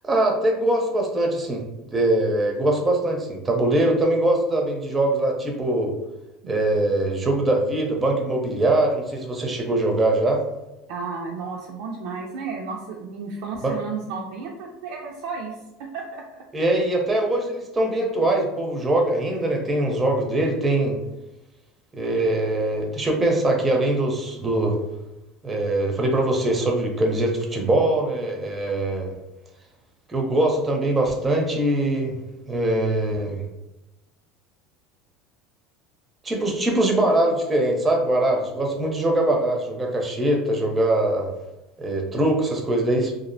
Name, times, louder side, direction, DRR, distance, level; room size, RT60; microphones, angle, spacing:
voice 1, 0.0-1.6 1.9-5.9 6.5-10.4 13.6-13.7 16.5-21.0 21.9-24.8 25.4-29.1 30.1-32.2 32.5-33.4 36.2-41.3 41.8-43.1, right 1 dB, 20° right, 1 dB, 0.5 m, -22 dB
voice 2, 10.9-15.6 15.9-16.4, right 4 dB, 75° right, -1 dB, 0.3 m, -33 dB
2.4 x 2.0 x 2.6 m, 0.97 s
supercardioid pair, 105°, 0 cm